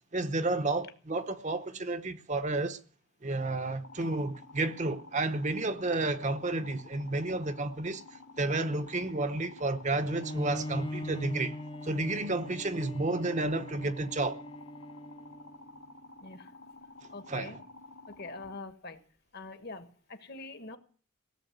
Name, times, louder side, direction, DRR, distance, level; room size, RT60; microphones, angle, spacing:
voice 1, 0.1-2.8 3.2-8.0 8.4-11.5 11.8-14.4 17.3-17.6, right 2 dB, 35° right, 0.9 m, -31 dB
sound 1, 3.8-18.6, left 2 dB, 70° left, 2.0 m, -51 dB
Bowed string instrument, 10.0-15.7, left 1 dB, 25° left, 0.7 m, -41 dB
voice 2, 16.2-16.5 17.1-17.6 18.1-19.0 19.3-20.8, left 3 dB, 50° left, 1.4 m, -44 dB
17.0 x 7.5 x 9.2 m
head